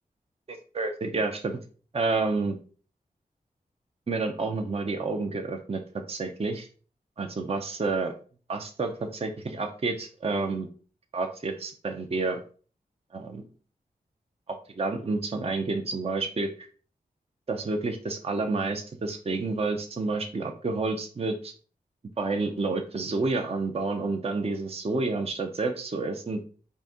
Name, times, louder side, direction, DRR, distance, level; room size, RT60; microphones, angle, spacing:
voice 1, 0.5-1.6 1.9-2.5 4.1-5.8 6.1-6.7 7.2-8.1 8.5-10.7 11.1-12.4 13.1-13.4 14.5-16.5 17.5-21.5 22.2-26.4, right 3 dB, 40° right, 4 dB, 0.6 m, -29 dB
4.0 x 2.6 x 3.6 m, 0.40 s
cardioid pair, 45°, 16 cm